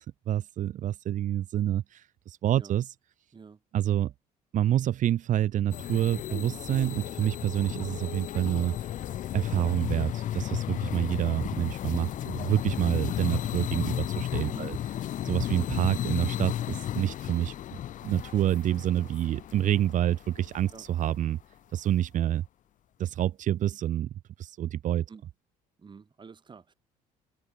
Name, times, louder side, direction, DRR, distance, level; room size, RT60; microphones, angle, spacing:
voice 1, 0.0-2.9 3.7-4.1 4.5-8.9 9.3-14.7 15.2-21.4 21.7-22.4 23.0-25.0, right 12 dB, 60° right, 1.3 m, -28 dB
sound 1, 5.7-21.0, left 12 dB, 60° left, 2.0 m, -34 dB
voice 2, 14.5-14.8 20.7-20.8 25.1-25.2 25.8-26.7, right 5 dB, 30° right, 3.9 m, -47 dB
supercardioid pair, 90°, 15 cm